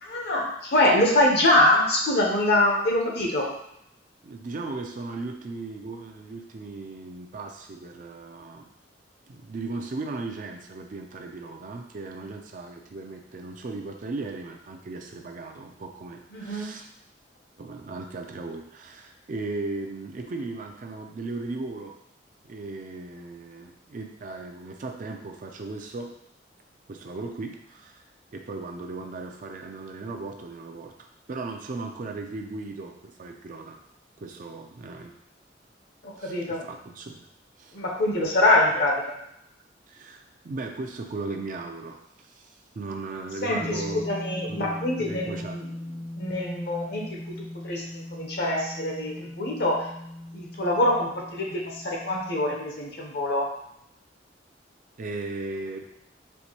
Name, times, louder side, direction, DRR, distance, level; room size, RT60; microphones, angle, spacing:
voice 1, 0.0-3.5 16.3-16.8 36.0-36.6 37.7-39.2 43.4-45.7 46.2-47.3 47.6-49.9 50.3-53.5, left 1 dB, 60° left, -1 dB, 0.8 m, -24 dB
voice 2, 4.2-8.7 9.3-16.9 17.6-21.9 22.4-26.1 26.9-28.0 28.3-33.8 34.2-35.2 36.2-37.3 37.6-37.8 39.9-44.1 44.5-45.6 55.0-55.9, right 3 dB, 45° right, 3 dB, 0.4 m, -37 dB
sound 1, 43.6-52.6, left 1 dB, 25° left, 0.6 m, -39 dB
4.5 x 2.6 x 2.8 m, 0.75 s
head